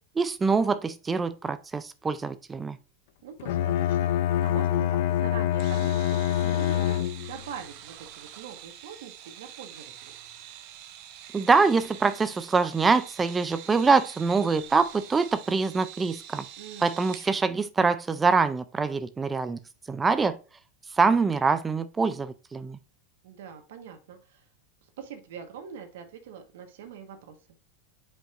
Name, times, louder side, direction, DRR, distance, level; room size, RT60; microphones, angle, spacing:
voice 1, 0.2-2.8 11.3-16.4 16.8-19.6 19.9-20.4 21.0-22.8, right 4 dB, 15° right, 0.3 m, -24 dB
voice 2, 3.2-4.2 4.4-10.1 16.6-17.0 23.2-24.5 25.0-27.4, right 7 dB, 85° right, 1.2 m, -43 dB
Bowed string instrument, 3.4-7.5, left 11 dB, 65° left, 0.4 m, -25 dB
sound 1, 5.6-17.3, right 11 dB, 50° right, 0.8 m, -46 dB
7.4 x 5.2 x 2.5 m
supercardioid pair, 155°, 0 cm